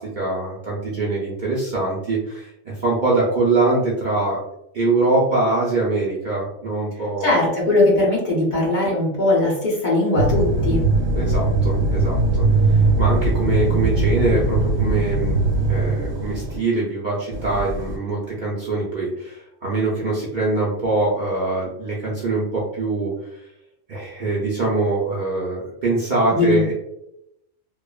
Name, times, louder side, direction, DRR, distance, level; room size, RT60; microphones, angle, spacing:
voice 1, 0.0-4.4 4.7-7.3 11.1-15.4 15.7-23.4 23.9-26.7, right 2 dB, 50° right, -5 dB, 0.6 m, -23 dB
voice 2, 7.2-10.8 26.3-26.7, left 2 dB, 45° left, -4 dB, 0.8 m, -19 dB
sound 1, 10.2-16.6 17.3-18.0, right 2 dB, 75° right, 1.1 m, -20 dB
3.0 x 2.0 x 2.2 m, 0.81 s
omnidirectional pair, 1.3 m